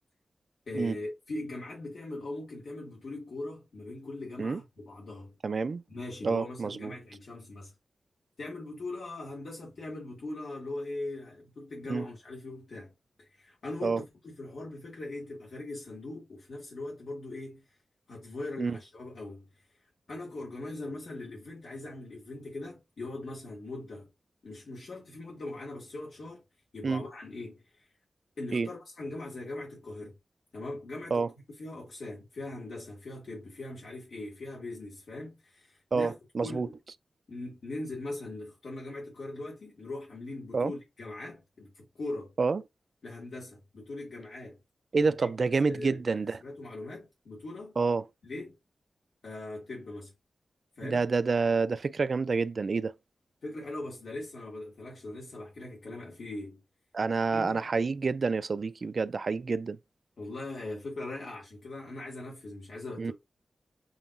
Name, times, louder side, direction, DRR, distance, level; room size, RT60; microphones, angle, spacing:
voice 1, 0.7-5.3 5.9-7.7 8.4-12.9 13.2-17.6 18.1-19.6 20.1-24.1 24.4-26.4 26.7-27.9 28.4-30.1 30.5-31.3 31.6-36.1 36.4-36.6 37.3-42.3 43.0-44.6 45.2-45.3 45.7-46.0 46.4-47.7 48.2-48.6 49.2-50.1 50.8-51.0 53.4-56.6 57.3-57.7 60.2-63.1, left 2 dB, 70° left, 1.9 m, -40 dB
voice 2, 5.4-5.8 6.2-6.9 11.9-12.1 13.8-14.0 18.6-18.8 26.8-27.0 28.5-28.7 31.1-31.3 35.9-36.7 40.5-40.7 42.4-42.6 44.9-46.4 47.8-48.0 50.8-52.9 56.9-59.8 63.0-63.1, right 4 dB, 50° right, 0.3 m, -28 dB
7.1 x 2.8 x 2.5 m
wide cardioid pair, 130°, 0 cm